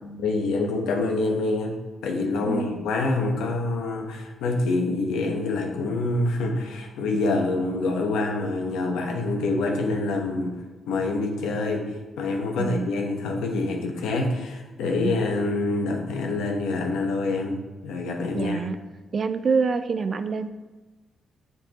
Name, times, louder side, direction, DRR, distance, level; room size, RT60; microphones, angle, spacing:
voice 1, 0.0-1.8 2.0-10.6 10.9-11.9 12.2-17.6 17.8-18.6, left 2 dB, 80° left, 1 dB, 1.1 m, -26 dB
voice 2, 2.4-2.8 12.6-12.9 15.0-15.2 18.3-18.8 19.1-20.5, right 5 dB, 50° right, 10 dB, 0.5 m, -26 dB
7.9 x 5.4 x 3.0 m, 1.2 s
supercardioid pair, 50°, 0 cm